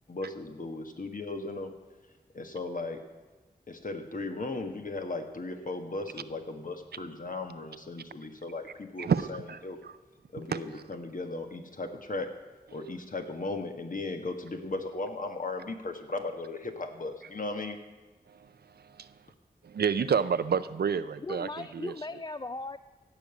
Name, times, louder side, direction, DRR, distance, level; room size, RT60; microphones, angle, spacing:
voice 1, 0.1-1.7 2.3-3.0 3.7-9.8 10.3-12.3 12.7-17.8, left 2 dB, 55° left, 5 dB, 1.5 m, -36 dB
voice 2, 9.0-9.9 10.5-10.6 19.0-19.1 19.6-21.9, right 6 dB, 80° right, 14 dB, 0.5 m, -29 dB
voice 3, 21.2-22.8, left 3 dB, 25° left, 13 dB, 0.3 m, -38 dB
15.5 x 5.3 x 8.2 m, 1.2 s
cardioid pair, 50°, 16 cm